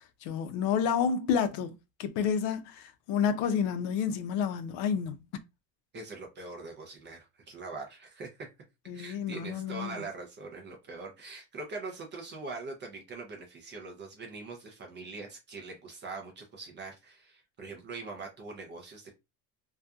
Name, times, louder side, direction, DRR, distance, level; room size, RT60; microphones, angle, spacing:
voice 1, 0.0-1.7 2.0-5.2 8.9-10.0, left 7 dB, 65° left, 0.6 m, -30 dB
voice 2, 5.9-8.5 8.9-19.1, right 3 dB, 25° right, 0.4 m, -42 dB
2.6 x 2.3 x 2.2 m
cardioid pair, 150°, 46 cm